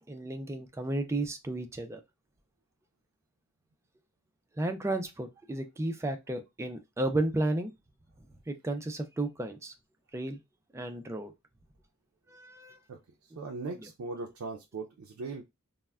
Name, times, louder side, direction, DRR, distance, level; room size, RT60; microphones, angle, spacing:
voice 1, 0.1-2.0 4.6-7.7 8.5-9.7 10.1-10.4 10.7-11.3 12.3-12.8, right 2 dB, 15° right, 0.3 m, -33 dB
voice 2, 12.9-15.4, right 3 dB, 85° right, 0.4 m, -39 dB
3.3 x 2.1 x 2.2 m
head